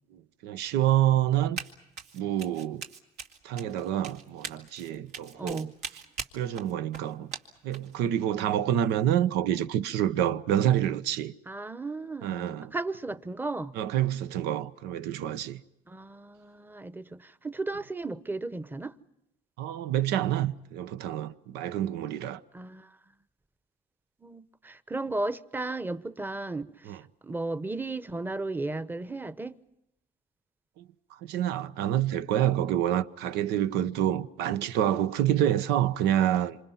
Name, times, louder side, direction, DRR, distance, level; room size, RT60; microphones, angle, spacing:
voice 1, 0.1-1.6 2.1-2.8 3.4-5.7 6.3-7.3 7.6-11.3 12.2-12.7 13.8-15.6 19.6-22.4 26.9-27.0 30.8-30.9 31.2-36.6, right 11 dB, 90° right, 1.0 m, -27 dB
Run, 1.6-1.7 2.0-7.9, right 6 dB, 75° right, 2.4 m, -40 dB
voice 2, 5.4-5.7 11.5-13.7 15.9-18.9 22.5-22.9 24.2-27.0 27.2-29.6, right 2 dB, 10° right, 0.9 m, -35 dB
27.0 x 26.5 x 5.8 m
cardioid pair, 110°, 17 cm